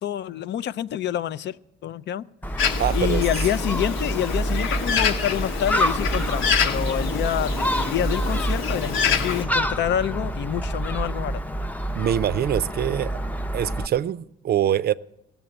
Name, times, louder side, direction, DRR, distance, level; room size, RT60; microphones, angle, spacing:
voice 1, 0.0-1.6 1.8-2.2 2.9-11.4, left 11 dB, 60° left, 0.5 m, -27 dB
Gull seagull, 2.4-13.9, equal, 10° left, 0.6 m, -27 dB
Bird, 2.6-9.5, left 7 dB, 80° left, 1.2 m, -27 dB
voice 2, 2.8-3.2 11.9-13.2 13.5-14.9, right 10 dB, 50° right, 0.4 m, -24 dB
16.5 x 7.0 x 8.7 m
cardioid pair, 90°, 20 cm